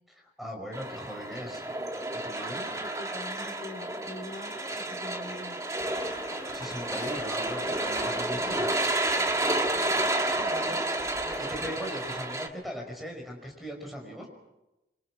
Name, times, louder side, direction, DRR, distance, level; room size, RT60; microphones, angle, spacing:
voice 1, 0.1-1.6 2.2-2.7 6.2-8.8 11.4-14.3, equal, ahead, 1 dB, 5.5 m, -39 dB
sound 1, 0.7-12.5, right 2 dB, 20° right, 1.7 m, -31 dB
voice 2, 2.7-5.6 9.9-10.8, left 1 dB, 40° left, 4 dB, 3.1 m, -44 dB
sound 2, 5.8-12.2, left 2 dB, 15° left, 1.2 m, -45 dB
27.0 x 25.0 x 6.2 m, 0.95 s
head